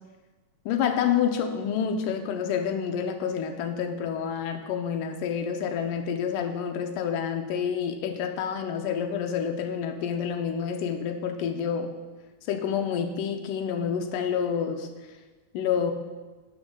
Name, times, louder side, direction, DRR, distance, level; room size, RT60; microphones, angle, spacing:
voice 1, 0.7-11.9 12.5-14.9 15.5-15.9, left 7 dB, 85° left, 5 dB, 2.3 m, -28 dB
12.5 x 6.1 x 3.8 m, 1.3 s
omnidirectional pair, 3.7 m